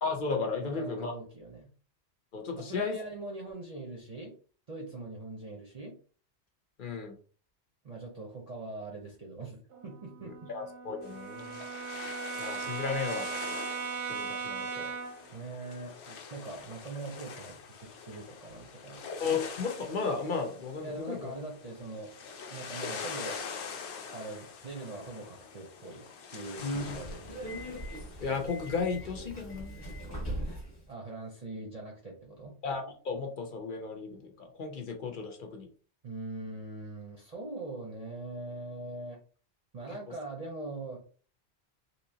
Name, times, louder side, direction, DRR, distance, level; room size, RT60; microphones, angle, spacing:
voice 1, 0.0-1.1 2.3-3.0 6.8-7.2 10.5-11.6 12.4-13.3 14.1-14.9 19.2-21.3 26.6-27.0 28.2-29.8 32.6-35.7, left 4 dB, 50° left, 3 dB, 0.8 m, -34 dB
voice 2, 0.6-1.7 2.5-4.3 4.7-6.0 7.8-10.5 15.3-19.0 20.8-22.1 22.5-23.4 24.1-26.0 26.3-27.5 30.9-32.5 36.0-39.2 39.7-41.0, right 2 dB, 40° right, -2 dB, 0.7 m, -42 dB
Brass instrument, 9.7-15.3, right 5 dB, 80° right, 0.8 m, -38 dB
sound 1, 11.0-28.7, left 5 dB, 75° left, 0.9 m, -45 dB
Subway metro underground, 26.7-30.8, equal, 25° left, 0.9 m, -40 dB
3.4 x 2.8 x 2.7 m, 0.40 s
omnidirectional pair, 1.2 m